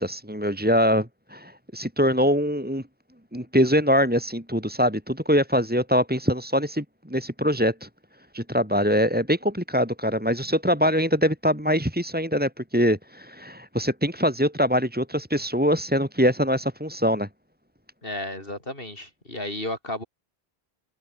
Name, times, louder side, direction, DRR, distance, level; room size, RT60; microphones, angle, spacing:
voice 1, 0.0-2.8 3.3-7.9 8.3-17.3, equal, 10° right, 4.0 m, -23 dB
voice 2, 18.0-20.0, left 1 dB, 65° left, 7.3 m, -33 dB
omnidirectional pair, 1.0 m